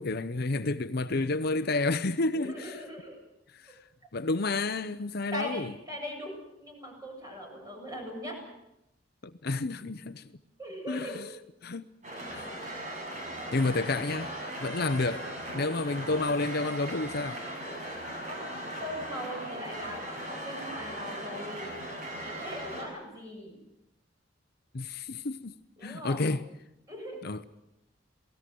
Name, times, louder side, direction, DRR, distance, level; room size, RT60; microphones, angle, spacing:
voice 1, 0.0-2.8 3.5-3.8 4.1-5.7 9.2-10.3 10.9-11.3 11.6-11.9 12.3-12.5 13.5-14.3 14.6-15.3 15.5-17.4 24.7-25.5 25.8-26.4 27.2-27.4, left 3 dB, 60° left, 0.8 m, -30 dB
voice 2, 2.3-3.2 5.3-8.4 10.6-11.2 18.3-18.4 18.8-21.7 22.2-23.6 25.8-26.3 26.9-27.2, equal, 20° right, 8.0 m, -40 dB
sound 1, 12.0-22.8, right 1 dB, 45° right, 6.9 m, -38 dB
28.0 x 18.5 x 7.8 m
head